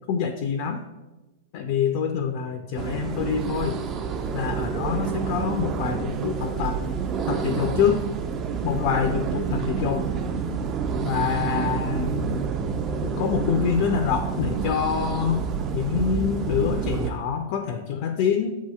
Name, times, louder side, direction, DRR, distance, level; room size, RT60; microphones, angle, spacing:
voice 1, 0.1-0.8 1.5-3.8 4.3-6.8 7.3-8.0 8.6-10.0 11.0-12.5 13.0-15.4 15.7-18.6, left 7 dB, 50° left, 7 dB, 0.3 m, -26 dB
sound 1, 2.8-17.1, right 6 dB, 30° right, 0.3 m, -28 dB
7.3 x 2.7 x 2.3 m, 1.1 s
hypercardioid pair, 105°, 0 cm